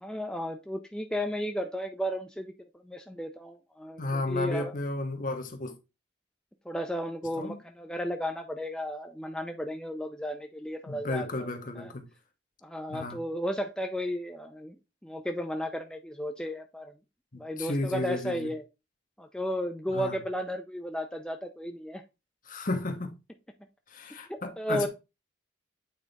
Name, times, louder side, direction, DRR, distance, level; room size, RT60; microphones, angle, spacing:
voice 1, 0.0-4.7 6.7-11.5 11.8-11.9 12.6-14.8 15.0-16.9 17.3-18.6 19.2-22.0 24.3-24.9, equal, 5° left, 0.5 m, -34 dB
voice 2, 4.0-5.7 7.4-7.6 10.9-12.1 12.9-13.2 17.3-18.5 19.9-20.2 22.5-23.1 23.9-24.9, left 2 dB, 45° left, 1.1 m, -33 dB
8.5 x 3.7 x 4.0 m
head